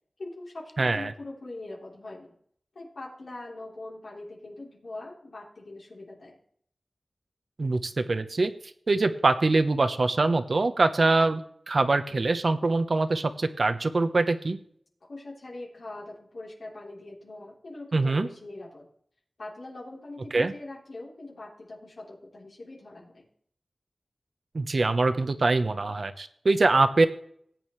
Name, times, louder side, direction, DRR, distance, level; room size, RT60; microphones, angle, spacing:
voice 1, 0.2-2.3 2.8-6.4 15.0-18.9 19.4-23.2, left 2 dB, 80° left, -4 dB, 3.5 m, -42 dB
voice 2, 0.8-1.1 7.6-8.5 8.9-14.6 17.9-18.3 20.3-20.5 24.5-27.1, right 3 dB, 65° right, 10 dB, 1.0 m, -24 dB
18.0 x 8.7 x 3.2 m, 0.64 s
cardioid pair, 45°, 0 cm